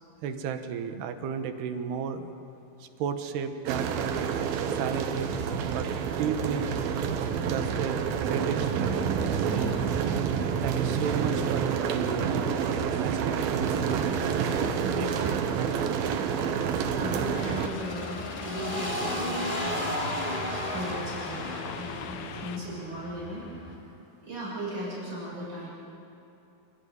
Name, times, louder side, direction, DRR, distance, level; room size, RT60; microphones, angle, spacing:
voice 1, 0.2-2.3 2.8-4.2 4.7-5.9 6.2-6.7 7.4-9.8 10.6-14.0 15.0-15.9, right 7 dB, 90° right, 7 dB, 3.3 m, -34 dB
sound 1, 3.7-17.7, right 7 dB, 75° right, 2.8 m, -28 dB
voice 2, 9.5-9.9 14.8-15.3 16.8-20.0 20.5-23.9 24.2-25.7, equal, 30° right, -7 dB, 7.2 m, -37 dB
sound 2, 14.1-23.7, equal, 15° left, 2.3 m, -35 dB
sound 3, 17.3-22.6, left 11 dB, 75° left, 2.5 m, -42 dB
27.5 x 14.0 x 9.3 m, 2.8 s
omnidirectional pair, 4.6 m